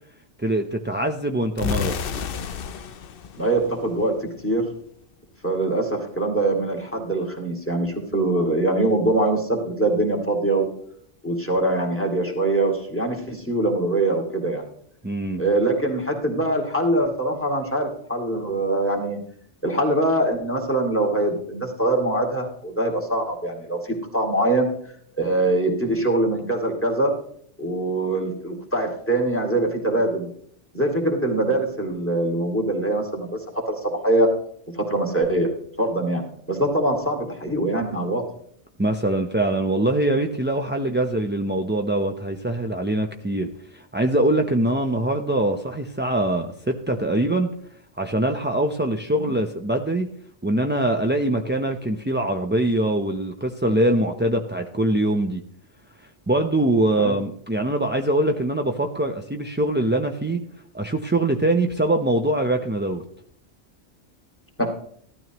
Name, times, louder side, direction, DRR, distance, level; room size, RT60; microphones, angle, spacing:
voice 1, 0.4-2.0 15.0-15.4 38.8-47.5 48.0-50.1 50.4-55.4 56.0-60.4 60.7-63.0, right 1 dB, 15° right, 3 dB, 0.4 m, -23 dB
sound 1, 1.6-4.4, left 7 dB, 55° left, 0.8 m, -31 dB
voice 2, 3.4-4.7 5.4-10.7 11.2-14.6 15.4-19.2 19.6-24.7 25.2-27.1 27.6-30.3 30.7-33.4 33.7-34.3 34.8-35.5 35.8-36.2 36.5-38.2 49.2-49.3 57.0-57.2 64.6-64.7, right 2 dB, 10° left, 1 dB, 2.3 m, -23 dB
15.5 x 12.5 x 3.0 m, 0.65 s
omnidirectional pair, 1.2 m